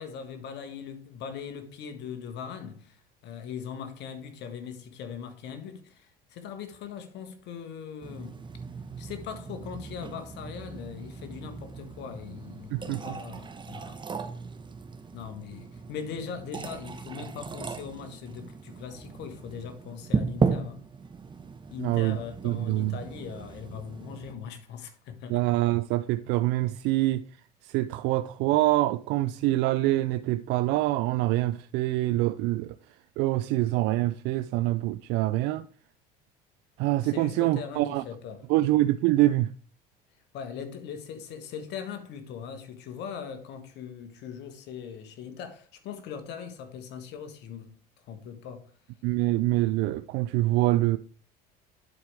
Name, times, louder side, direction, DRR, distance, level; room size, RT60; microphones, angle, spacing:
voice 1, 0.0-8.4 9.0-14.0 15.1-20.8 21.7-25.4 37.0-38.4 40.3-47.7 48.1-48.7, left 7 dB, 65° left, 1.5 m, -40 dB
sound 1, 8.0-24.3, right 5 dB, 25° right, 1.0 m, -36 dB
voice 2, 12.7-13.2 21.8-22.2 22.4-22.9 25.3-27.3 27.6-32.7 33.2-35.7 36.8-38.0 38.5-39.5 49.0-51.0, right 16 dB, 65° right, 0.4 m, -25 dB
10.5 x 4.6 x 3.5 m
supercardioid pair, 80°, 19 cm